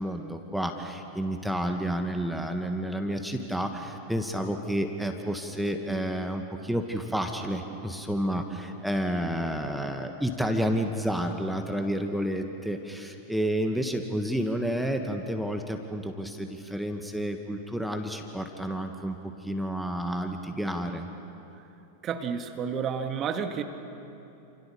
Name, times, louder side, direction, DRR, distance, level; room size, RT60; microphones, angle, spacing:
voice 1, 0.0-21.1, equal, ahead, 4 dB, 2.0 m, -30 dB
voice 2, 22.0-23.6, right 7 dB, 30° right, 6 dB, 2.1 m, -30 dB
29.5 x 27.5 x 7.1 m, 3.0 s
figure-of-eight pair, 90°, 0 cm